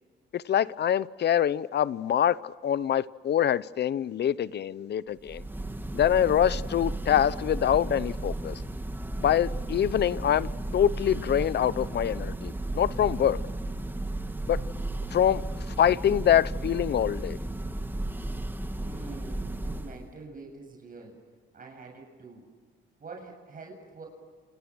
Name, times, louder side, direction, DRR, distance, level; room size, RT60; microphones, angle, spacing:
voice 1, 0.3-5.4 5.9-8.6 9.2-13.4 14.5-14.6 15.1-17.4, left 10 dB, 60° left, 0.9 m, -25 dB
Church bell, 5.2-20.1, right 1 dB, 10° right, 1.8 m, -34 dB
voice 2, 18.3-21.2 21.5-22.5 23.0-24.1, right 4 dB, 45° right, 7.7 m, -46 dB
29.5 x 29.0 x 6.4 m
cardioid pair, 90°, 20 cm